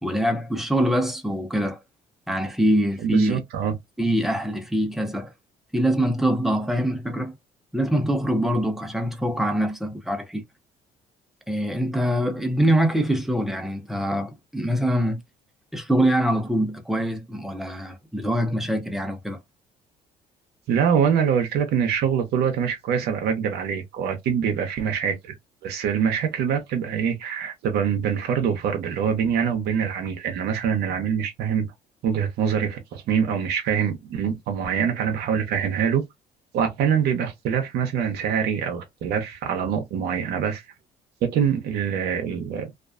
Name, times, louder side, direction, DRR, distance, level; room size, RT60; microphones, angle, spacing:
voice 1, 0.0-1.8 2.3-3.4 4.0-5.3 5.7-7.3 7.7-10.4 11.5-15.2 15.7-19.4, right 1 dB, ahead, 0.6 m, -24 dB
voice 2, 3.0-3.7 20.7-25.3 25.6-31.7 32.0-36.0 36.5-40.6 41.2-42.7, right 7 dB, 70° right, 0.7 m, -24 dB
2.4 x 2.3 x 2.4 m
cardioid pair, 110°, 17 cm